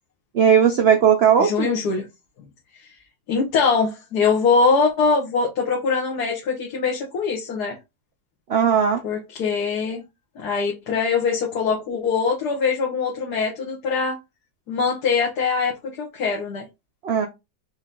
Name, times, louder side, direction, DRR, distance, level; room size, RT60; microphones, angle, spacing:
voice 1, 0.3-1.7 8.5-9.0 17.0-17.3, right 8 dB, 85° right, 0.5 m, -17 dB
voice 2, 1.4-2.0 2.8-2.9 3.3-7.8 9.0-10.0 10.3-14.2 14.7-15.7 16.0-16.6, left 5 dB, 65° left, 1.6 m, -22 dB
4.9 x 2.7 x 3.8 m
omnidirectional pair, 1.9 m